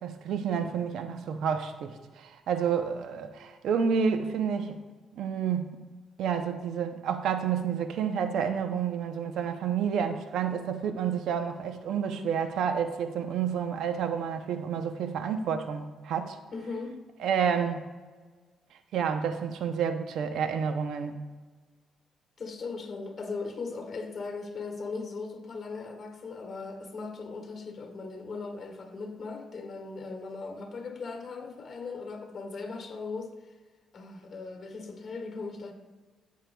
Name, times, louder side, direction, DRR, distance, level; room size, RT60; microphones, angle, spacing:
voice 1, 0.0-4.8 5.1-5.8 6.2-16.4 17.2-17.8 18.9-21.2, right 7 dB, 75° right, 0.6 m, -29 dB
voice 2, 16.5-17.0 22.4-33.3 33.9-35.7, left 4 dB, 45° left, 1.8 m, -38 dB
14.5 x 6.4 x 2.3 m
cardioid pair, 90°, 0 cm